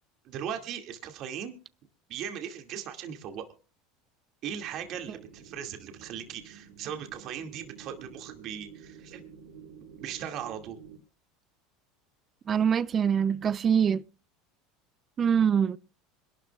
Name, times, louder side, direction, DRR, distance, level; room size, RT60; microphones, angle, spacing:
voice 1, 0.2-1.6 2.1-3.4 4.4-9.2 10.0-10.8, right 9 dB, 55° right, 2.2 m, -38 dB
sound 1, 4.4-11.0, right 7 dB, 75° right, 4.7 m, -50 dB
voice 2, 12.5-14.0 15.2-15.8, right 7 dB, 35° right, 0.6 m, -24 dB
26.0 x 12.0 x 2.4 m
supercardioid pair, 105°, 0 cm